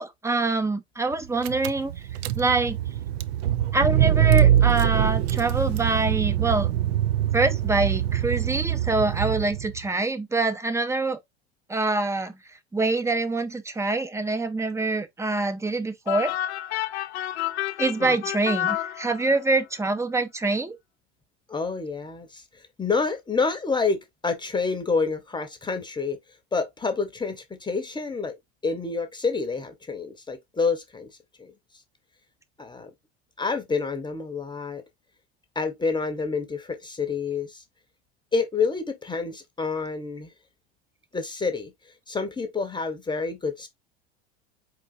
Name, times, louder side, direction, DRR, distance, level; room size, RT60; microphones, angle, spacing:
voice 1, 0.0-1.9 2.4-2.8 3.7-6.7 7.3-11.2 11.7-12.4 12.7-16.3 17.8-20.8, right 3 dB, 10° right, 0.6 m, -25 dB
Car / Engine, 1.1-1.2 1.4-9.8, right 11 dB, 70° right, 0.5 m, -23 dB
sound 1, 16.1-19.6, left 13 dB, 80° left, 0.5 m, -30 dB
voice 2, 21.5-22.4 22.8-26.2 26.5-28.3 28.6-31.1 31.4-31.5 32.6-32.9 33.4-34.8 35.5-37.6 38.3-40.3 41.1-41.7 42.1-43.7, left 4 dB, 15° left, 0.9 m, -28 dB
4.5 x 3.8 x 2.5 m
hypercardioid pair, 95°, 33 cm